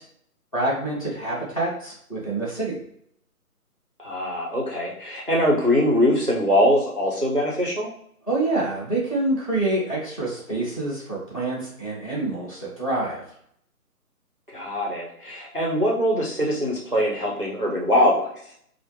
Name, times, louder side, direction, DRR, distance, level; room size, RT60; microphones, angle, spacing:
voice 1, 0.5-2.8 8.3-13.2, right 2 dB, 25° left, -5 dB, 0.9 m, -26 dB
voice 2, 4.0-7.9 14.5-18.3, equal, 40° right, -3 dB, 0.4 m, -22 dB
4.3 x 2.1 x 3.1 m, 0.69 s
hypercardioid pair, 165°, 46 cm